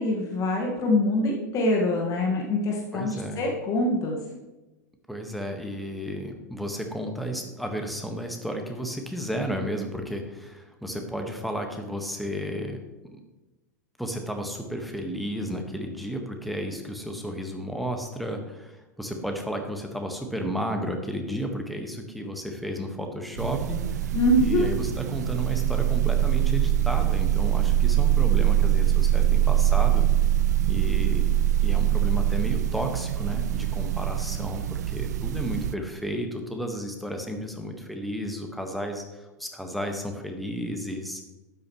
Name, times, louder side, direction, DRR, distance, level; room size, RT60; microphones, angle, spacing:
voice 1, 0.0-4.2 24.1-24.7, left 1 dB, 35° left, 0 dB, 1.7 m, -24 dB
voice 2, 2.9-3.4 5.1-12.8 14.0-24.1 24.4-30.0 30.7-31.3 31.6-39.0 39.4-41.2, equal, ahead, 4 dB, 1.5 m, -33 dB
sound 1, 23.4-35.7, right 11 dB, 65° right, 0.4 m, -23 dB
12.0 x 9.1 x 3.1 m, 1.1 s
figure-of-eight pair, 90°, 10 cm